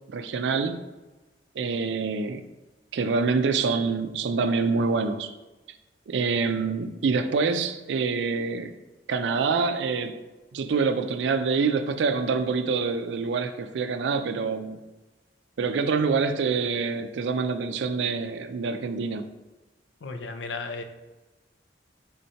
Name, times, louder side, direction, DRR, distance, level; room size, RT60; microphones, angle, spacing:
voice 1, 0.1-0.8 1.6-2.4 2.9-5.3 6.1-8.7 9.1-10.1 10.5-14.8 15.6-19.3, right 4 dB, 75° right, 9 dB, 0.4 m, -26 dB
voice 2, 20.0-20.8, left 3 dB, 85° left, 7 dB, 0.4 m, -34 dB
3.7 x 2.7 x 4.4 m, 1.1 s
head